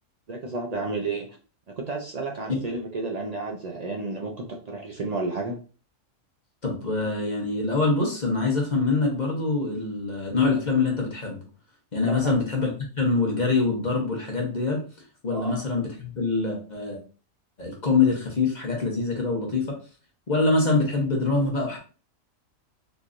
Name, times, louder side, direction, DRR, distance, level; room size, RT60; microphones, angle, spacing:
voice 1, 0.3-1.3 1.7-5.6 12.0-12.3 15.3-15.6, right 3 dB, 60° right, 1 dB, 0.4 m, -31 dB
voice 2, 6.6-11.4 11.9-12.7 13.0-14.8 15.2-17.0 17.6-19.8 20.3-21.8, left 3 dB, 35° left, -1 dB, 0.9 m, -24 dB
3.9 x 3.0 x 2.5 m, 0.37 s
omnidirectional pair, 1.4 m